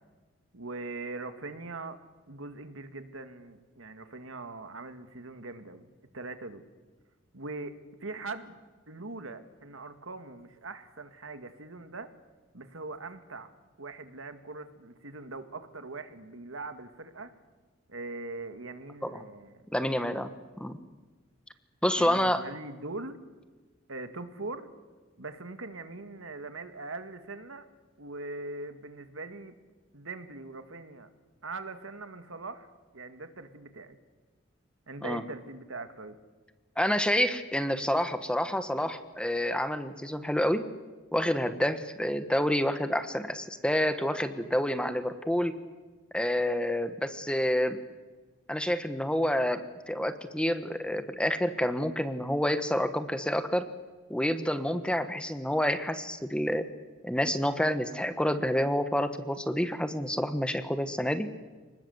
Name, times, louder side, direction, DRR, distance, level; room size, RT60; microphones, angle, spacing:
voice 1, 0.5-2.0 2.3-6.6 7.3-8.6 8.9-12.1 12.5-13.5 13.8-17.3 17.9-20.0 22.0-23.2 23.9-24.7 25.2-27.7 28.0-29.5 29.9-31.1 31.4-32.7 32.9-34.0 34.9-36.2, right 3 dB, 85° right, 9 dB, 2.0 m, -41 dB
voice 2, 19.7-20.3 20.6-20.8 21.8-22.4 35.0-35.2 36.8-40.6 41.1-45.5 46.1-47.8 48.5-49.6 49.9-53.7 54.1-56.6 57.0-61.3, left 1 dB, 5° left, 10 dB, 1.3 m, -28 dB
29.5 x 20.5 x 8.0 m, 1.3 s
head